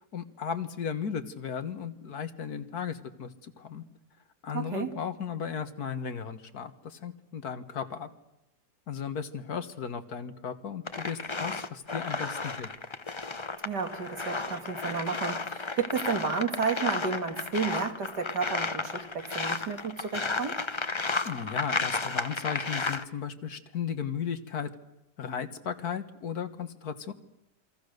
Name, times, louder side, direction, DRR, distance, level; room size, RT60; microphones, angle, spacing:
voice 1, 0.0-3.8 4.4-8.1 8.9-12.7 21.3-24.7 25.2-27.1, left 7 dB, 65° left, 10 dB, 1.9 m, -35 dB
voice 2, 4.5-4.9 13.6-20.6, right 5 dB, 75° right, 5 dB, 2.9 m, -32 dB
sound 1, 10.9-23.0, left 3 dB, 25° left, 0.7 m, -33 dB
28.0 x 24.0 x 6.6 m, 0.87 s
omnidirectional pair, 1.8 m